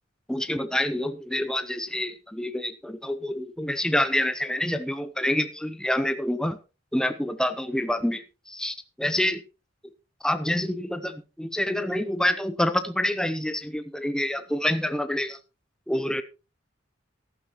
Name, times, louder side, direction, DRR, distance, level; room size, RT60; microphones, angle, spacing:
voice 1, 0.3-6.6 6.9-9.4 10.2-15.4 15.9-16.2, left 1 dB, 5° left, 10 dB, 0.6 m, -27 dB
14.0 x 12.0 x 3.0 m, 0.32 s
head